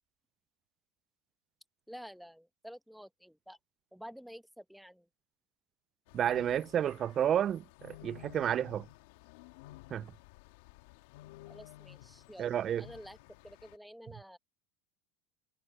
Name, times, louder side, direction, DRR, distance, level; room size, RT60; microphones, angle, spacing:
voice 1, 1.9-3.6 3.9-5.1 11.5-12.5 12.8-13.2 13.4-14.4, equal, ahead, 1.8 m, -50 dB
sound 1, 6.1-13.8, left 17 dB, 75° left, 3.1 m, -54 dB
voice 2, 6.1-8.9 9.9-10.1 12.4-12.8, right 10 dB, 40° right, 0.4 m, -31 dB
hypercardioid pair, 95°, 0 cm